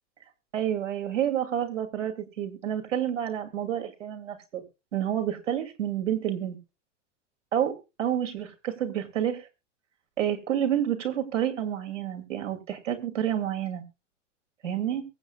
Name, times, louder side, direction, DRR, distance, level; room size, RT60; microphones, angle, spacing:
voice 1, 0.5-4.6 4.9-6.6 7.5-9.5 10.2-13.8 14.6-15.0, right 10 dB, 80° right, 7 dB, 2.7 m, -29 dB
23.0 x 8.2 x 2.3 m, 0.27 s
hypercardioid pair, 95°, 37 cm